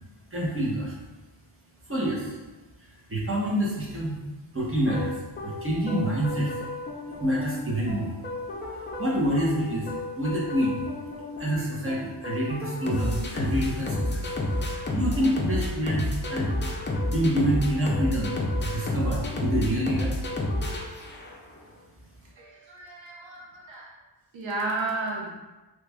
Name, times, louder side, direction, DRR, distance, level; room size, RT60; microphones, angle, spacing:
voice 1, 0.3-0.9 1.9-2.4 3.1-4.2 4.5-5.1 5.4-6.5 7.1-8.1 8.5-8.6 9.0-10.8 11.4-14.2 14.9-16.5 17.1-18.3 18.6-20.1, right 1 dB, 30° right, -5 dB, 1.0 m, -27 dB
sound 1, 4.9-21.5, left 1 dB, 25° left, 0.5 m, -31 dB
voice 2, 22.4-23.9 24.3-25.4, right 3 dB, 80° right, -2 dB, 0.7 m, -33 dB
3.2 x 2.4 x 3.4 m, 1.1 s
wide cardioid pair, 80°, 45 cm